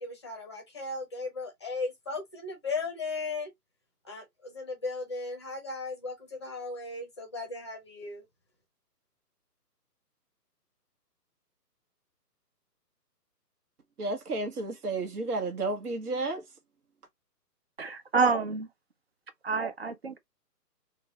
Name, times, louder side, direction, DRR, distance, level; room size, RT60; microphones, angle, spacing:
voice 1, 0.0-3.5 4.1-8.2, left 3 dB, 20° left, 0.6 m, -36 dB
voice 2, 14.0-16.4, right 2 dB, 65° right, 1.2 m, -32 dB
voice 3, 17.8-18.7 19.4-20.2, right 4 dB, 40° right, 0.5 m, -28 dB
3.9 x 2.3 x 2.8 m
hypercardioid pair, 150°, 49 cm